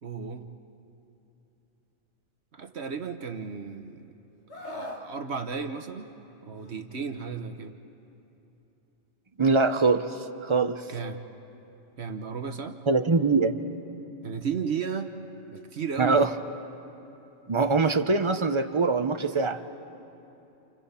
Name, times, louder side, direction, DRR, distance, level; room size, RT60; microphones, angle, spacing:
voice 1, 0.0-0.5 2.5-4.1 4.5-6.1 6.5-7.7 10.9-11.2 12.0-12.8 14.2-15.1 15.5-16.2, right 6 dB, 60° right, 6 dB, 1.3 m, -34 dB
Screaming, 4.5-5.1 6.5-6.8, left 1 dB, 60° left, 2.2 m, -39 dB
voice 2, 9.4-10.1 10.4-10.8 12.9-13.5 16.0-16.3 17.5-19.6, right 4 dB, 25° right, 8 dB, 0.8 m, -23 dB
29.5 x 29.5 x 5.7 m, 2.9 s
omnidirectional pair, 1.3 m